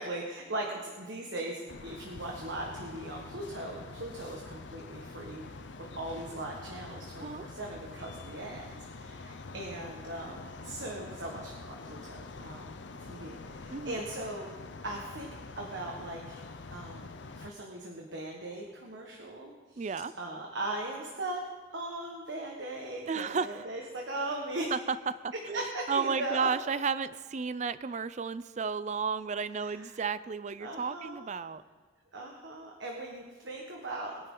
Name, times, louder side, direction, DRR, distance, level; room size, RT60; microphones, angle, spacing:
voice 1, 0.0-8.6 9.0-14.5 14.8-15.3 15.6-16.4 16.7-19.9 20.1-21.4 21.7-24.7 25.5-26.5 29.6-29.9 30.6-31.2 32.1-34.1, right 1 dB, 70° right, 0 dB, 1.5 m, -39 dB
sound 1, 1.7-17.5, left 3 dB, 70° left, 0.7 m, -46 dB
voice 2, 13.7-14.0 19.8-20.1 23.1-23.6 24.7-25.0 25.2-31.6, right 5 dB, 40° right, 15 dB, 0.4 m, -33 dB
21.0 x 10.5 x 3.9 m, 1.5 s
head